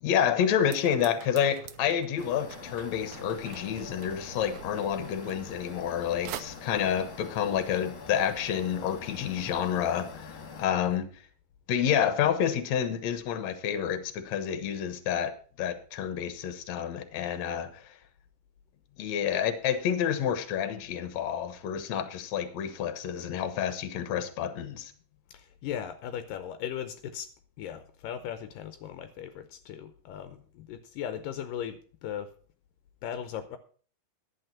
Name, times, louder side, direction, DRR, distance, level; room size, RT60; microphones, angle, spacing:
voice 1, 0.0-11.1 11.7-15.3 15.6-17.7 19.0-24.9, left 9 dB, 60° left, 10 dB, 2.2 m, -29 dB
sound 1, 0.7-6.0 6.3-6.4, right 11 dB, 80° right, 2.4 m, -46 dB
sound 2, 2.2-10.6, left 4 dB, 45° left, 2.4 m, -45 dB
voice 2, 25.3-27.3 27.6-32.3 33.0-33.6, left 9 dB, 80° left, 10 dB, 2.4 m, -38 dB
11.5 x 8.5 x 5.5 m, 0.43 s
omnidirectional pair, 4.0 m